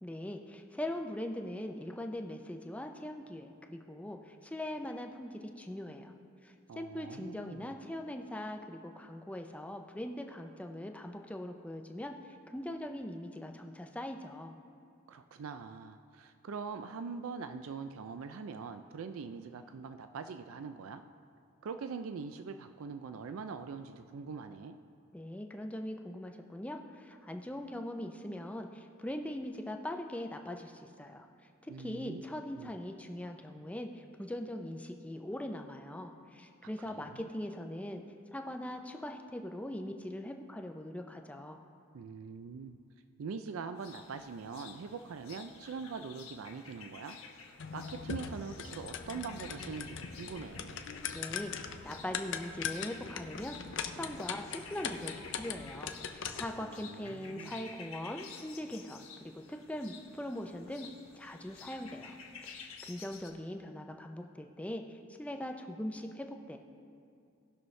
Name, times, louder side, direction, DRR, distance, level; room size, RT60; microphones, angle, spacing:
voice 1, 0.0-6.1 6.4-12.1 12.5-14.5 25.1-31.3 31.6-38.0 38.3-41.6 51.1-60.9 61.1-62.1 62.4-66.6, left 1 dB, 5° left, 4 dB, 0.5 m, -41 dB
voice 2, 6.7-7.7 15.1-21.0 21.6-24.8 31.7-32.2 32.6-32.7 36.6-37.3 41.9-42.8 43.2-47.2 47.7-50.9 56.6-57.7, right 5 dB, 80° right, 8 dB, 0.4 m, -43 dB
sound 1, 43.7-63.3, left 5 dB, 90° left, 1.2 m, -52 dB
sound 2, 47.6-56.6, left 6 dB, 60° left, 0.6 m, -41 dB
18.0 x 6.2 x 3.2 m, 2.4 s
head